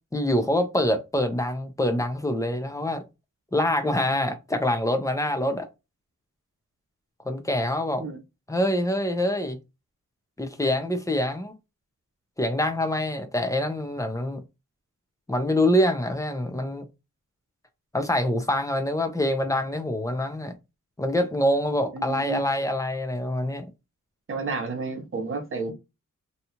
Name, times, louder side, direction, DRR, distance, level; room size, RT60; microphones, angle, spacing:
voice 1, 0.1-3.0 3.5-5.7 7.3-8.0 8.5-9.6 10.4-11.5 12.4-14.4 15.3-16.8 17.9-20.5 21.0-23.7, left 1 dB, 10° left, 0.4 m, -25 dB
voice 2, 21.9-22.4 24.3-25.7, right 4 dB, 40° right, 0.8 m, -31 dB
2.7 x 2.3 x 2.8 m
wide cardioid pair, 175°, 32 cm